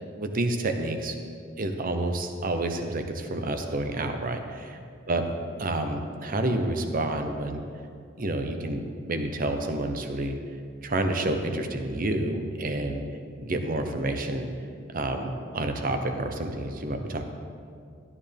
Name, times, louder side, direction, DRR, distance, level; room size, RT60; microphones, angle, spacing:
voice 1, 0.2-1.2 1.6-4.4 5.1-5.3 5.6-7.6 8.2-10.4 10.8-13.0 13.4-14.5 14.9-17.3, right 2 dB, 45° right, 6 dB, 0.8 m, -29 dB
12.0 x 9.8 x 3.5 m, 2.2 s
head